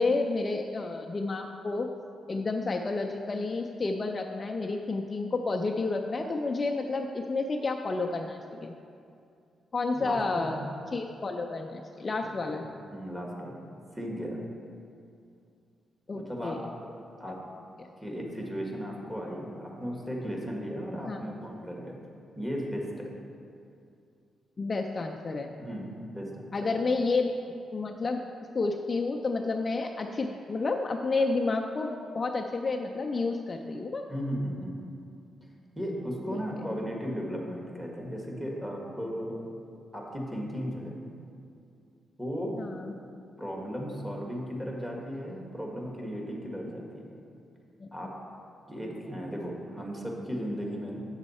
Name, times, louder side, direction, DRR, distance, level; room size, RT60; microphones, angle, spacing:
voice 1, 0.0-1.9 2.3-8.7 9.7-10.6 10.9-12.6 16.1-16.6 17.8-17.9 21.1-21.2 24.6-25.5 26.5-27.3 27.7-28.2 28.5-34.0 36.3-36.4 42.5-42.9 47.8-47.9, left 3 dB, 35° left, 3 dB, 0.4 m, -30 dB
voice 2, 9.9-10.5 12.2-12.3 12.9-13.5 13.9-14.4 16.1-16.6 17.2-17.4 18.0-22.0 22.3-23.1 25.6-25.9 26.1-26.5 34.1-34.9 35.7-39.4 39.9-41.0 42.2-42.5 43.4-47.1 47.9-48.1 48.7-51.0, equal, 10° right, -1 dB, 1.5 m, -35 dB
8.0 x 6.3 x 4.2 m, 2.5 s
cardioid pair, 90°, 0 cm